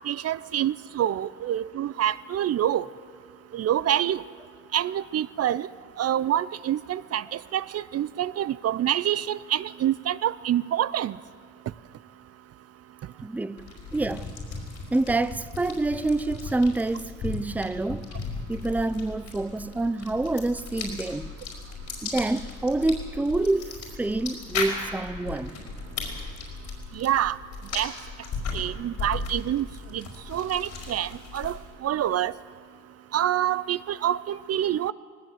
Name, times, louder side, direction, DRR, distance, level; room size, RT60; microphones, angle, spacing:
voice 1, 0.1-2.9 3.5-4.2 4.7-5.7 6.0-7.2 7.5-11.1 27.0-27.4 27.7-27.9 28.5-29.6 29.9-30.0 30.3-31.5 31.8-32.3 33.1-34.9, right 11 dB, 55° right, 0.5 m, -26 dB
voice 2, 13.2-14.3 14.9-18.1 18.5-21.3 22.0-25.6, right 2 dB, 5° right, 0.5 m, -27 dB
sound 1, 13.6-31.8, left 4 dB, 75° left, 5.1 m, -37 dB
19.0 x 18.5 x 7.9 m
cardioid pair, 90°, 30 cm